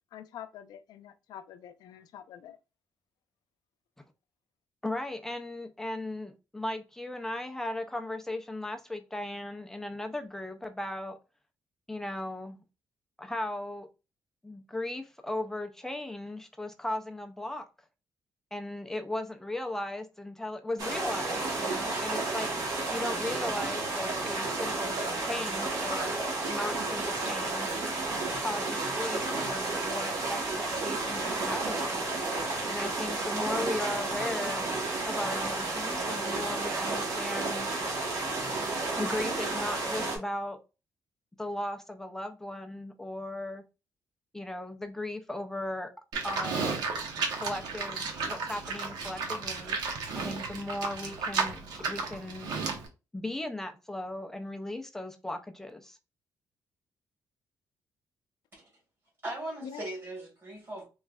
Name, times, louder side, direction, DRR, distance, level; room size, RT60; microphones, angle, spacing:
voice 1, 0.1-2.6 59.6-59.8, left 9 dB, 85° left, 0.4 m, -45 dB
voice 2, 4.8-11.2 11.9-12.6 13.2-13.9 14.4-17.7 18.5-26.2 26.5-27.8 28.4-32.2 32.7-34.6 35.1-37.7 38.9-40.6 41.4-43.6 44.3-45.9 46.2-46.8 47.3-49.8 50.2-52.5 53.1-56.0, left 1 dB, 5° left, 0.4 m, -37 dB
sound 1, 20.8-40.2, right 3 dB, 60° right, 1.2 m, -32 dB
Livestock farm animals working animals, 46.1-52.9, right 4 dB, 90° right, 0.8 m, -33 dB
voice 3, 59.2-60.8, right 1 dB, 35° right, 2.1 m, -39 dB
3.6 x 3.1 x 2.3 m
cardioid pair, 175°, 7 cm